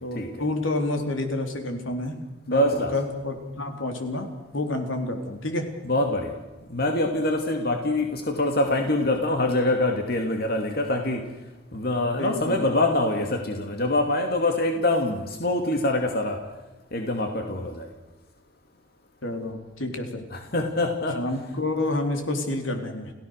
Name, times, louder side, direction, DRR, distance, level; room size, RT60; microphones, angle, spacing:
voice 1, 0.0-2.2 2.5-4.3 4.5-5.7 12.2-12.7 19.2-20.2 21.1-23.1, left 2 dB, 85° left, 4 dB, 3.9 m, -29 dB
voice 2, 2.5-2.9 5.9-6.3 6.7-11.2 11.7-16.4 16.9-17.9 20.3-21.2, left 1 dB, 50° left, 4 dB, 2.5 m, -24 dB
30.0 x 16.5 x 6.6 m, 1.1 s
head